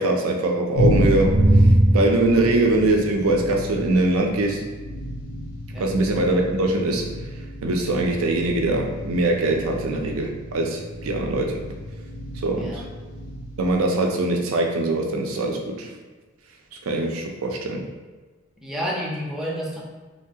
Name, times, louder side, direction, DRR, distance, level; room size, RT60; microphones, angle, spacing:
voice 1, 0.0-1.4 1.9-4.6 5.8-7.1 7.6-11.6 12.4-12.8 13.6-15.9 16.8-17.9, right 2 dB, 80° right, 1 dB, 0.5 m, -22 dB
sound 1, 0.7-13.7, right 1 dB, 85° left, 1.0 m, -25 dB
voice 2, 12.5-12.8 18.6-19.8, equal, ahead, -4 dB, 0.4 m, -30 dB
3.1 x 2.3 x 2.7 m, 1.3 s
head